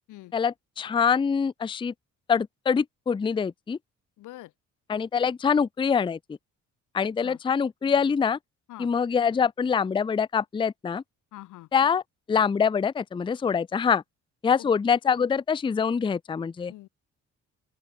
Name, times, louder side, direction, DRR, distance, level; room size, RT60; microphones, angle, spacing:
voice 1, 0.3-1.9 2.3-3.8 4.9-6.4 6.9-8.4 8.8-11.0 11.7-12.0 12.3-14.0 14.4-16.7, left 6 dB, 15° left, 0.4 m, -24 dB
voice 2, 4.2-4.5 7.2-7.4 8.7-8.9 11.3-11.7 14.6-14.7 16.7-16.9, left 17 dB, 85° left, 1.0 m, -44 dB
open air
cardioid pair, 90°, 30 cm